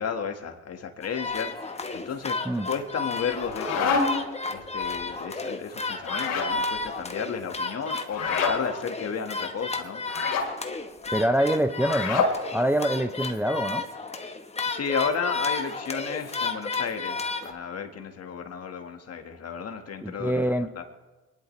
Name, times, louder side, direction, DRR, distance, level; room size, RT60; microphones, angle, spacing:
voice 1, 0.0-10.0 14.6-20.8, left 6 dB, 50° left, 6 dB, 1.6 m, -33 dB
sound 1, 1.0-17.5, left 3 dB, 20° left, 1.1 m, -33 dB
sound 2, 3.3-4.3 6.0-6.6 8.1-8.6 10.1-10.5 11.8-12.4, left 4 dB, 85° left, 2.6 m, -27 dB
voice 2, 11.1-13.8 20.0-20.7, right 1 dB, 5° right, 8 dB, 0.6 m, -25 dB
25.5 x 11.0 x 3.2 m, 1.2 s
cardioid pair, 80°, 31 cm